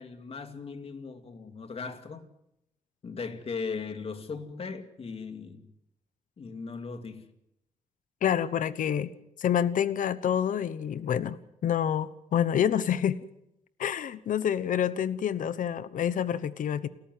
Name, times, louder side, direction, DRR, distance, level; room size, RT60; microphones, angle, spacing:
voice 1, 0.0-2.3 3.0-5.7 6.4-7.3, left 5 dB, 45° left, 2.5 m, -38 dB
voice 2, 8.2-9.1 9.4-13.2 13.8-16.9, left 9 dB, 75° left, 1.0 m, -27 dB
29.5 x 14.0 x 9.4 m
wide cardioid pair, 125°, 13 cm